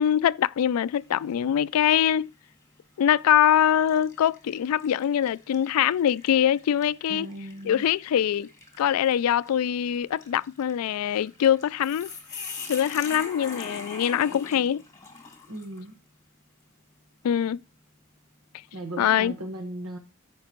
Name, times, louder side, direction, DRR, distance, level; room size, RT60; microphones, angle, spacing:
voice 1, 0.0-2.3 3.0-7.3 7.6-8.5 8.8-12.1 12.7-14.8 17.2-17.6 19.0-19.3, left 9 dB, 75° left, 0.3 m, -23 dB
sound 1, 0.9-1.4 1.9-2.1 3.0-3.3 3.9-15.9, left 4 dB, 15° left, 1.8 m, -43 dB
voice 2, 7.1-7.9 15.5-15.9 18.7-20.0, right 1 dB, 75° right, 1.4 m, -37 dB
14.5 x 5.2 x 3.0 m
head